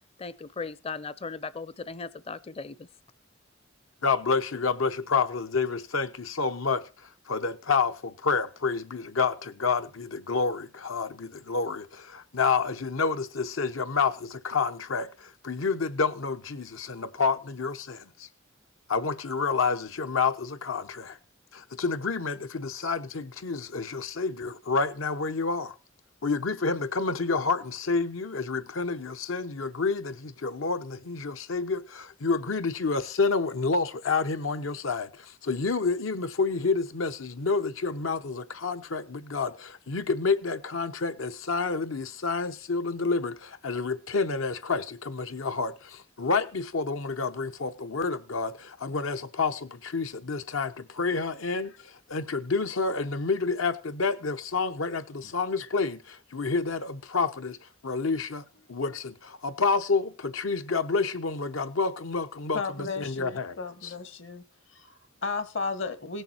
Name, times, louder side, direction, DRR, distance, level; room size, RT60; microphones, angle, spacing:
voice 1, 0.2-2.9, left 4 dB, 30° left, 0.5 m, -37 dB
voice 2, 4.0-18.3 18.9-21.2 21.5-25.8 26.2-63.9, left 4 dB, 85° left, 0.9 m, -29 dB
voice 3, 62.5-64.4 64.7-66.2, left 4 dB, 65° left, 1.3 m, -34 dB
17.0 x 6.8 x 4.4 m
head